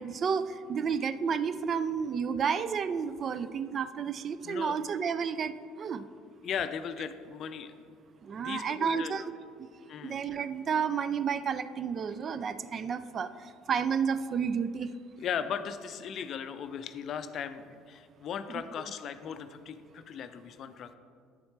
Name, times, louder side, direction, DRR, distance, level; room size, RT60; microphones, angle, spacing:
voice 1, 0.0-6.0 8.2-9.3 9.6-9.7 10.0-14.9 18.5-18.6, right 6 dB, 40° right, 13 dB, 0.3 m, -31 dB
voice 2, 4.4-4.8 6.4-7.7 8.3-9.3 9.9-10.2 15.2-20.9, left 7 dB, 50° left, 11 dB, 0.4 m, -37 dB
9.5 x 7.0 x 3.2 m, 2.3 s
figure-of-eight pair, 60°, 0 cm